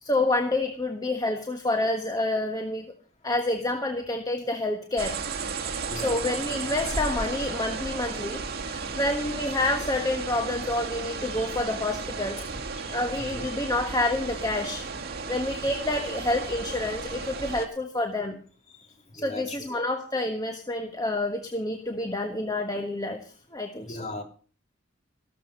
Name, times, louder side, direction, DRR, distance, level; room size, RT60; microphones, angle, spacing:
voice 1, 0.0-2.9 3.2-5.2 5.9-12.4 12.9-14.8 15.3-18.4 19.1-24.0, left 2 dB, 20° left, 5 dB, 1.3 m, -28 dB
sound 1, 5.0-17.7, right 4 dB, 50° right, 2.2 m, -34 dB
voice 2, 5.9-6.3 11.3-11.6 12.8-13.4 19.2-19.6 23.8-24.2, left 1 dB, 35° left, 3 dB, 3.3 m, -39 dB
14.5 x 13.0 x 5.4 m, 0.39 s
head